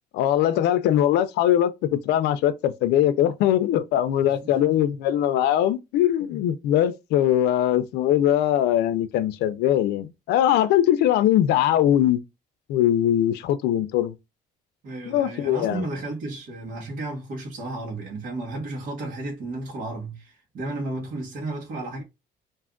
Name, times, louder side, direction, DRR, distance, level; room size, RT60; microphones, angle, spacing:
voice 1, 0.1-12.2 12.7-14.1 15.1-15.8, left 11 dB, 85° left, 0.5 m, -21 dB
voice 2, 4.2-4.5 4.9-5.0 14.8-22.0, right 2 dB, 55° right, 1.2 m, -33 dB
2.6 x 2.4 x 3.6 m
cardioid pair, 110°, 17 cm